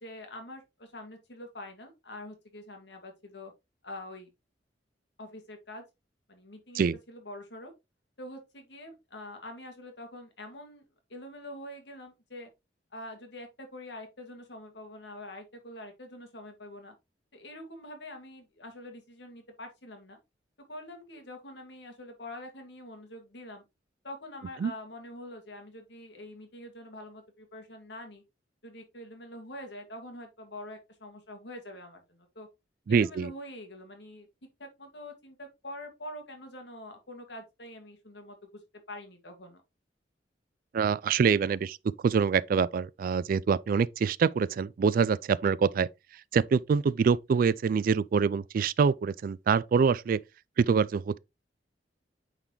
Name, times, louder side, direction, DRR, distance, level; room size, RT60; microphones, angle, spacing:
voice 1, 0.0-3.5 3.8-4.3 5.2-5.8 6.3-7.7 8.2-10.8 11.1-12.5 12.9-16.9 17.3-20.2 20.7-23.6 24.0-28.2 28.6-32.5 32.9-34.3 34.6-38.4 38.9-39.6, left 1 dB, 75° left, 2.0 m, -45 dB
voice 2, 32.9-33.3 40.7-41.8 42.0-45.9 46.3-50.2 50.6-51.2, right 6 dB, 55° right, 0.3 m, -25 dB
8.9 x 4.1 x 3.0 m
head